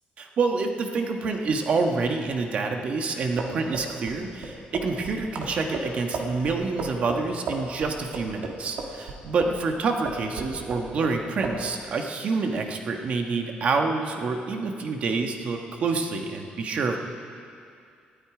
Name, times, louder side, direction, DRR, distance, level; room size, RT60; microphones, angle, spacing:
voice 1, 0.2-17.0, right 4 dB, 45° right, 3 dB, 1.3 m, -27 dB
sound 1, 3.4-9.8 10.1-11.2 11.4-11.6, right 3 dB, 75° right, 2.4 m, -34 dB
20.5 x 13.0 x 4.9 m, 2.3 s
cardioid pair, 175°, 3 cm